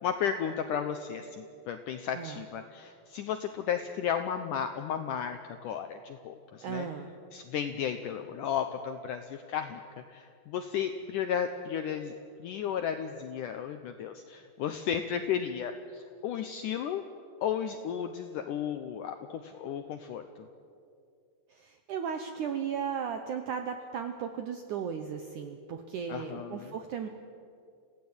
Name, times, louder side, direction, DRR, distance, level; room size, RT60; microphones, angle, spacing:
voice 1, 0.0-6.9 7.3-12.1 12.4-17.0 17.4-20.2 26.1-26.7, left 8 dB, 85° left, 7 dB, 1.8 m, -34 dB
voice 2, 6.6-7.1 21.5-27.1, right 7 dB, 75° right, 6 dB, 1.9 m, -36 dB
27.0 x 16.5 x 8.8 m, 2.4 s
omnidirectional pair, 4.9 m